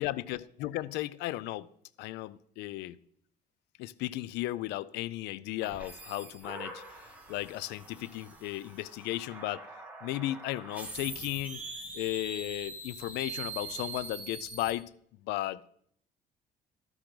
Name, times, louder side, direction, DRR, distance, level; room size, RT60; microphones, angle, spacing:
voice 1, 0.0-1.7 2.0-3.0 3.8-6.8 7.3-9.6 10.0-11.6 11.9-14.9 15.2-15.7, left 16 dB, 85° left, 0.4 m, -35 dB
sound 1, 5.6-14.7, right 3 dB, 10° right, 1.9 m, -44 dB
13.0 x 6.9 x 3.9 m
cardioid pair, 110°, 17 cm